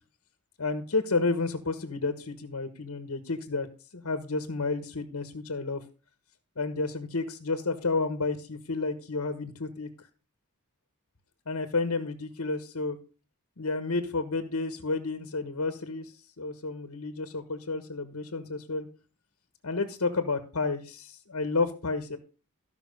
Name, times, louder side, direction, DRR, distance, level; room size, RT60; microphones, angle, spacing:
voice 1, 0.6-3.7 3.9-5.8 6.6-10.1 11.5-13.0 13.6-18.9 19.6-22.2, left 3 dB, 70° left, 9 dB, 1.3 m, -31 dB
14.5 x 5.9 x 5.3 m, 0.34 s
head